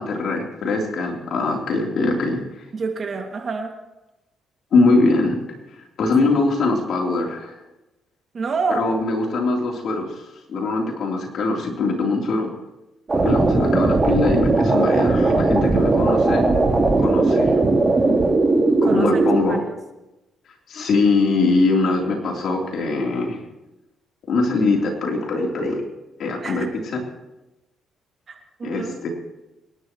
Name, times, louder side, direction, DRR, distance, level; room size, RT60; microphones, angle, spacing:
voice 1, 0.0-2.6 4.7-5.4 6.0-7.6 8.7-10.2 10.5-12.5 13.2-16.5 17.0-17.5 18.8-19.6 20.7-23.4 24.3-25.8 26.2-27.0 28.6-29.1, left 3 dB, 65° left, 0 dB, 3.6 m, -22 dB
voice 2, 2.7-3.7 8.3-8.8 18.8-19.8 26.4-26.7 28.3-28.9, right 4 dB, 45° right, 3 dB, 2.3 m, -28 dB
sound 1, 13.1-19.4, right 3 dB, 30° right, 3.5 m, -18 dB
26.0 x 11.5 x 3.2 m, 1.0 s
cardioid pair, 90°, 0 cm